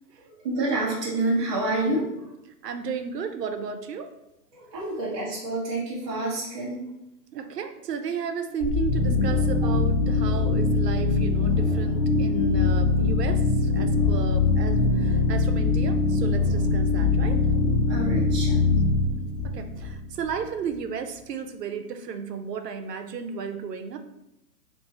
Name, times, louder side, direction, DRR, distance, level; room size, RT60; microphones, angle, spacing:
voice 1, 0.2-2.1 4.5-6.8 17.9-18.6, right 2 dB, 20° right, -8 dB, 0.4 m, -28 dB
voice 2, 2.6-4.1 7.3-17.4 19.4-24.0, right 6 dB, 80° right, 7 dB, 0.6 m, -33 dB
sound 1, 8.6-20.4, left 3 dB, 55° left, 1.1 m, -22 dB
2.8 x 2.6 x 3.6 m, 0.88 s
hypercardioid pair, 125°, 48 cm